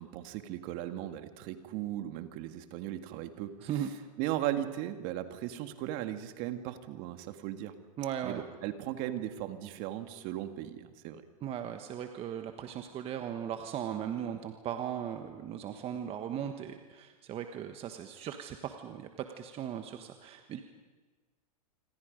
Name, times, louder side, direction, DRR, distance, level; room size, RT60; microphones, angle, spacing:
voice 1, 0.0-3.7 4.2-7.7 8.2-11.2, right 13 dB, 45° right, 8 dB, 1.9 m, -37 dB
voice 2, 8.0-8.4 11.4-20.6, right 9 dB, 30° right, 6 dB, 1.4 m, -38 dB
27.0 x 25.5 x 5.3 m, 1.3 s
hypercardioid pair, 120°, 20 cm